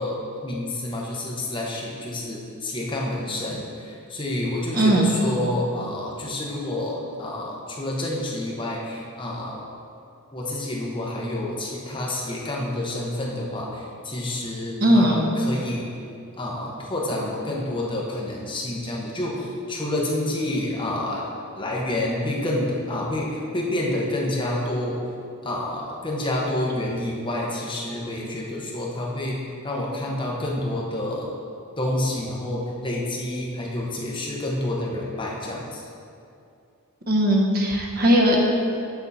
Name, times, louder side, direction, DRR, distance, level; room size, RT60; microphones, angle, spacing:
voice 1, 0.0-9.6 10.3-15.9 16.4-21.3 21.6-25.0 25.4-31.3 31.8-35.8, left 1 dB, 20° left, -3 dB, 1.0 m, -28 dB
voice 2, 4.7-5.1 14.8-15.2 37.1-38.4, right 1 dB, 40° right, -1 dB, 0.9 m, -18 dB
8.0 x 6.2 x 4.1 m, 2.5 s
head